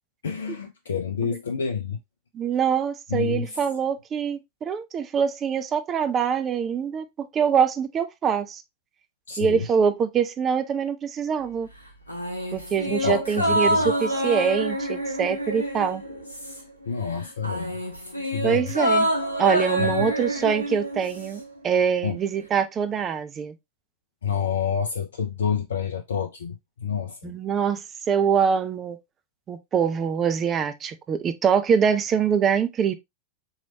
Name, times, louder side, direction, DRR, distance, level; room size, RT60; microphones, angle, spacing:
voice 1, 0.2-2.0 3.1-3.6 9.3-9.7 12.9-14.0 16.9-17.8 18.2-18.7 19.8-20.1 22.0-22.2 24.2-27.3, left 6 dB, 65° left, 0.4 m, -28 dB
voice 2, 2.3-8.6 9.4-11.7 12.5-16.0 18.4-19.1 19.4-23.5 27.2-29.0 29.5-32.9, right 7 dB, 25° right, 0.5 m, -24 dB
sound 1, 12.1-16.8 17.1-21.4 21.7-21.8, right 1 dB, 85° left, 0.8 m, -27 dB
4.0 x 3.1 x 2.8 m
figure-of-eight pair, 90°, 0 cm